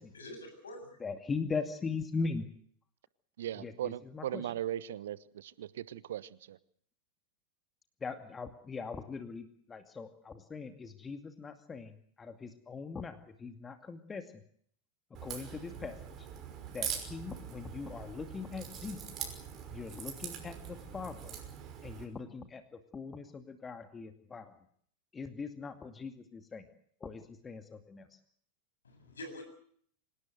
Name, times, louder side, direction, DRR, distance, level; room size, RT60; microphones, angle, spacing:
voice 1, 0.0-1.0 28.8-29.4, left 1 dB, 70° left, 7 dB, 7.9 m, -46 dB
voice 2, 1.0-2.5 3.6-4.5 8.0-14.4 15.2-16.3 16.7-19.3 19.7-21.4 21.8-24.5 25.1-26.7 27.0-28.2, left 4 dB, 15° left, 8 dB, 2.4 m, -41 dB
voice 3, 3.4-6.6, right 11 dB, 60° right, 20 dB, 0.9 m, -38 dB
Crack, 15.1-22.0, right 8 dB, 30° right, 5.7 m, -43 dB
26.5 x 18.0 x 7.9 m, 0.62 s
figure-of-eight pair, 90°, 0 cm